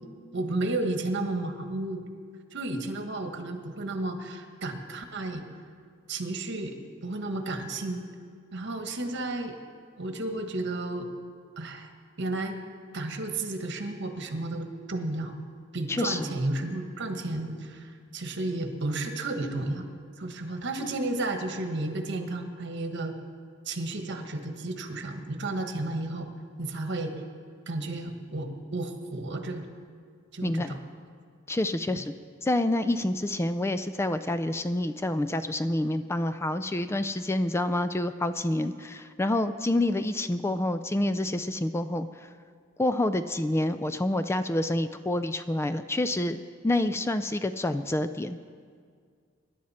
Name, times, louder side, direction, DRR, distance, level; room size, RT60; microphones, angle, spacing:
voice 1, 0.3-2.1 2.5-5.4 6.1-6.8 7.0-8.0 8.5-9.6 10.0-11.1 11.6-11.9 12.2-12.6 12.9-15.4 15.7-19.9 20.2-23.1 23.6-26.3 26.6-27.1 27.7-29.6 30.3-30.8 31.9-32.0, right 2 dB, 60° right, 5 dB, 1.4 m, -32 dB
voice 2, 15.9-16.3 30.4-30.7 31.5-32.1 32.4-42.3 42.8-48.4, left 1 dB, 15° left, 10 dB, 0.3 m, -28 dB
24.0 x 11.0 x 4.3 m, 2.1 s
head